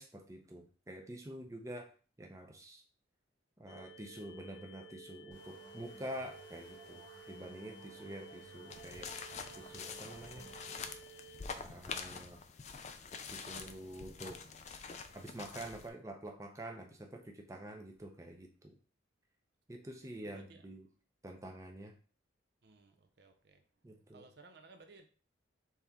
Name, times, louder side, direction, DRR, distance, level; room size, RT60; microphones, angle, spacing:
voice 1, 0.0-1.9 2.2-2.8 3.6-9.1 9.6-10.5 11.6-12.4 13.3-14.4 15.1-18.5 19.7-20.9 21.2-21.9 23.8-24.2, right 1 dB, 15° right, 2 dB, 0.5 m, -47 dB
sound 1, 3.7-11.4, right 2 dB, 90° left, 0.5 m, -54 dB
sound 2, 5.3-10.8, right 3 dB, 75° right, 1.3 m, -58 dB
sound 3, 8.7-15.9, left 5 dB, 35° left, 0.4 m, -46 dB
voice 2, 20.2-20.7 22.6-23.6 24.1-25.1, right 3 dB, 55° right, 6 dB, 0.6 m, -59 dB
4.2 x 3.4 x 3.5 m, 0.39 s
head